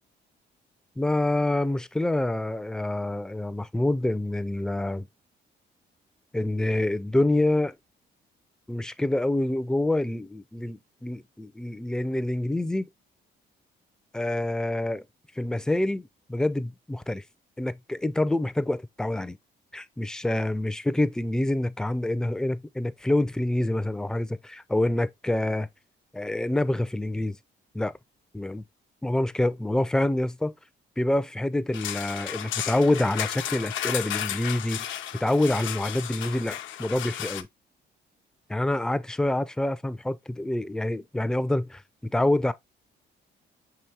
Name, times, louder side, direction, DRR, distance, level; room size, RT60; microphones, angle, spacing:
voice 1, 1.0-5.1 6.3-7.8 8.7-12.9 14.1-15.0 15.4-17.2 17.6-19.4 19.7-25.7 26.1-27.4 27.7-27.9 28.3-28.6 29.0-30.5 31.0-37.5 38.5-42.5, left 1 dB, 5° left, 0.3 m, -27 dB
sound 1, 31.7-37.4, left 11 dB, 75° left, 0.5 m, -33 dB
5.9 x 3.0 x 2.8 m
cardioid pair, 90°, 20 cm